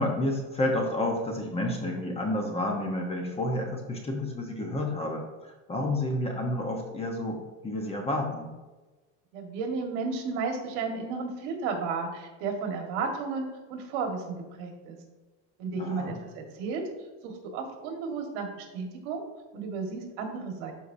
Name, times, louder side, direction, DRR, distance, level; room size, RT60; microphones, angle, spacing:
voice 1, 0.0-8.5 15.8-16.2, left 1 dB, 15° left, 2 dB, 1.0 m, -30 dB
voice 2, 9.3-15.0 15.6-16.8 17.2-19.2 19.5-20.7, right 4 dB, 70° right, 3 dB, 1.7 m, -33 dB
12.0 x 4.7 x 2.7 m, 1.2 s
cardioid pair, 150°, 35 cm